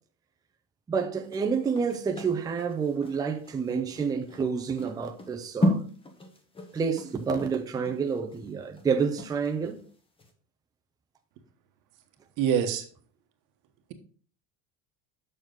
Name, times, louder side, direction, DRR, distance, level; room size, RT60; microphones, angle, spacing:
voice 1, 0.9-5.8 6.7-9.8, right 5 dB, 10° right, 0.5 m, -29 dB
sound 1, 1.2-9.8 10.2-10.3, left 1 dB, 15° left, 1.0 m, -34 dB
voice 2, 12.4-12.8, right 8 dB, 55° right, 1.2 m, -24 dB
7.1 x 6.2 x 3.8 m
cardioid pair, 160°, 36 cm